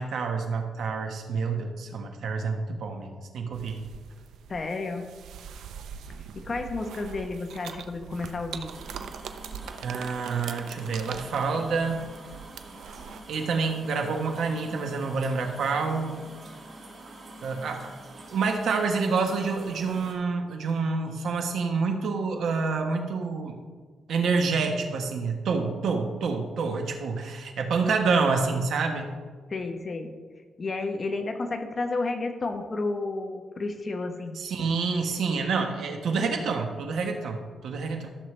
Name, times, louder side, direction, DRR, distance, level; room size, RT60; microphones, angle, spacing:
voice 1, 0.0-3.9 9.8-12.0 13.3-16.1 17.4-17.8 18.3-23.6 24.1-29.1 34.4-38.1, right 4 dB, 70° right, 4 dB, 1.3 m, -28 dB
sound 1, 3.5-13.2, right 7 dB, 85° right, 0.6 m, -42 dB
voice 2, 4.5-5.1 6.3-8.7 29.5-30.1 30.6-34.4, left 3 dB, 30° left, 5 dB, 1.0 m, -31 dB
sound 2, 8.7-20.2, right 2 dB, 45° right, 2.2 m, -46 dB
14.5 x 6.6 x 3.3 m, 1.5 s
cardioid pair, 135°, 0 cm